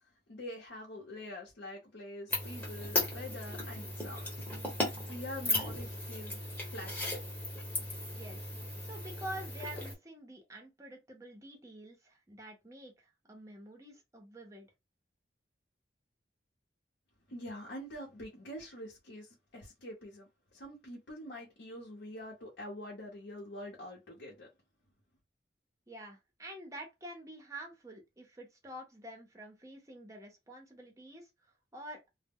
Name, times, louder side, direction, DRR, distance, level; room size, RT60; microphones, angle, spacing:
voice 1, 0.0-4.5 5.1-6.4 6.7-7.1 17.3-24.5, left 1 dB, 85° left, 0.8 m, -45 dB
sound 1, 2.3-9.9, left 1 dB, 10° left, 0.9 m, -36 dB
voice 2, 8.1-8.5 8.8-14.7 25.9-32.1, right 1 dB, 15° right, 0.6 m, -48 dB
2.0 x 2.0 x 3.5 m
head